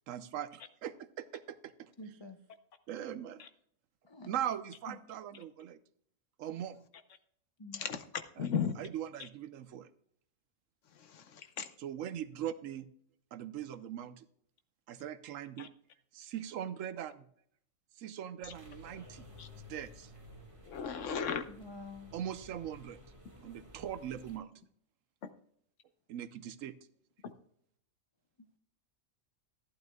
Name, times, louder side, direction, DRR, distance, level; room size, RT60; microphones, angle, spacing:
voice 1, 0.1-1.9 2.9-3.4 4.3-5.8 6.4-6.8 8.4-8.5 8.8-9.9 11.8-12.9 13.3-14.3 14.9-15.7 16.1-17.3 18.0-19.3 19.7-20.1 22.1-23.0 23.4-24.5 26.1-26.7, right 10 dB, 85° right, 1.1 m, -40 dB
voice 2, 2.0-2.4 4.0-4.3 4.9-5.0 7.6-7.8 11.4-11.5 21.5-22.1, left 2 dB, 25° left, 0.7 m, -48 dB
voice 3, 7.7-8.0 8.4-8.7 9.2-9.3 10.9-11.7 15.6-15.7 18.4-18.5 19.4-19.5 20.6-21.5 25.2-25.3 27.2-27.3, left 7 dB, 75° left, 1.2 m, -36 dB
sound 1, 18.4-24.4, left 1 dB, 25° right, 1.8 m, -54 dB
12.0 x 11.0 x 2.3 m
omnidirectional pair, 1.3 m